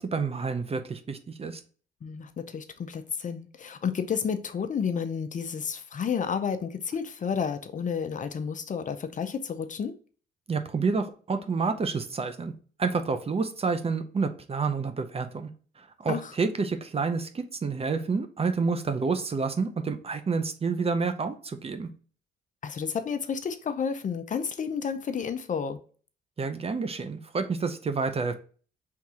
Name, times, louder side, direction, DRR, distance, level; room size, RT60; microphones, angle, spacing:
voice 1, 0.0-1.6 10.5-12.5 12.8-15.5 15.8-21.9 26.4-28.3, right 4 dB, 30° right, 0.6 m, -29 dB
voice 2, 2.0-10.0 16.1-16.3 22.6-25.8, left 6 dB, 40° left, 0.6 m, -31 dB
4.7 x 3.5 x 2.8 m
cardioid pair, 90°, 20 cm